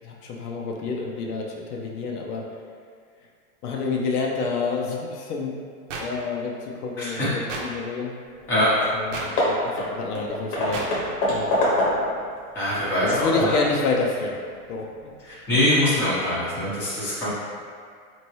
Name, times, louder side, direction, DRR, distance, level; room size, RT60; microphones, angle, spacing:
voice 1, 0.0-2.4 3.6-5.6 6.0-8.2 8.9-10.9 11.3-11.5 13.1-14.4 14.7-14.9, left 4 dB, 75° left, -1 dB, 0.7 m, -28 dB
sound 1, 5.9-6.0 7.5-7.6 9.1-9.3 10.7-10.9, right 4 dB, 55° right, 0.7 m, -31 dB
Hammer / Wood, 8.4-8.5 8.8-9.0 9.4-12.2 12.7-13.7, left 1 dB, 35° left, 0.9 m, -25 dB
voice 2, 12.5-13.5 15.2-17.3, left 1 dB, 5° left, -14 dB, 0.7 m, -23 dB
4.4 x 2.8 x 3.0 m, 2.1 s
supercardioid pair, 160°, 45 cm